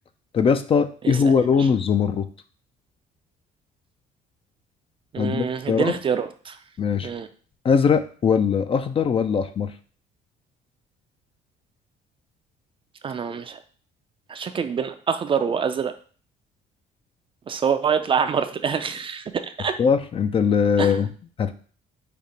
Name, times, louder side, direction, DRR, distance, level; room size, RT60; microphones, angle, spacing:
voice 1, 0.3-2.3 5.2-6.0 6.8-7.1 7.6-9.7 19.8-21.1 21.4-21.5, left 6 dB, 35° left, 10 dB, 0.4 m, -21 dB
voice 2, 5.1-6.6 7.0-7.3 13.0-13.6 14.3-15.9 17.5-19.8 20.8-21.0, right 6 dB, 30° right, 9 dB, 0.4 m, -25 dB
5.2 x 2.5 x 4.1 m, 0.42 s
cardioid pair, 110°, 17 cm